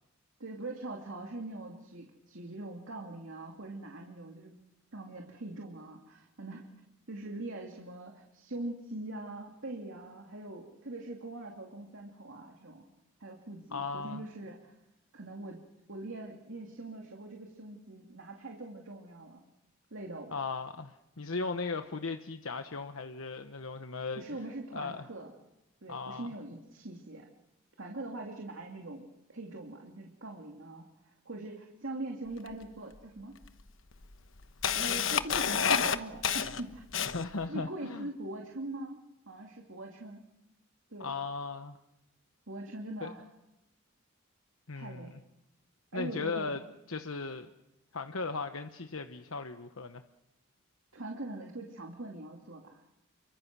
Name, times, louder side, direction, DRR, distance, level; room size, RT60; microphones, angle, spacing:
voice 1, 0.4-4.6 4.9-6.7 7.1-12.9 13.2-14.7 15.1-15.6 15.9-19.4 19.9-20.4 24.1-25.3 25.8-27.3 27.8-33.3 34.7-36.8 37.5-39.0 39.3-40.2 40.9-41.1 42.5-43.2 44.8-45.2 45.9-46.6 50.9-52.8, right 2 dB, 70° right, 1 dB, 2.6 m, -42 dB
voice 2, 13.7-14.3 20.3-24.4 24.7-25.1 25.9-26.3 37.1-38.1 41.0-41.8 43.0-43.1 44.7-45.2 45.9-46.6 46.9-47.5 47.9-50.0, left 4 dB, 85° left, 7 dB, 1.2 m, -37 dB
Camera, 32.5-32.6 33.4-33.5 34.0-37.4, left 7 dB, 65° left, 1.2 m, -29 dB
29.5 x 24.5 x 6.2 m, 0.91 s
head